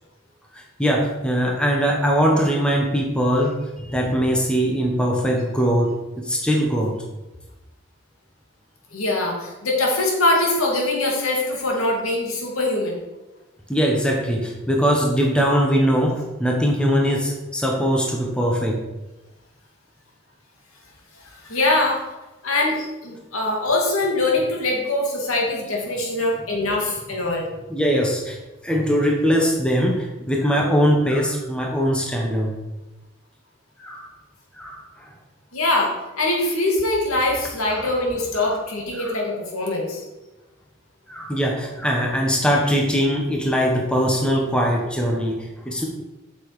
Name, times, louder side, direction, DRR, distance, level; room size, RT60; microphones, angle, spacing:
voice 1, 0.5-6.9 13.7-18.8 27.7-28.4 28.6-32.5 33.8-34.1 34.6-34.8 37.7-37.9 39.0-39.2 41.1-45.9, equal, 5° left, 0 dB, 1.2 m, -21 dB
voice 2, 8.9-13.0 21.2-22.0 22.4-27.5 35.5-40.0, left 2 dB, 85° left, -1 dB, 2.5 m, -23 dB
7.5 x 7.1 x 4.9 m, 1.1 s
head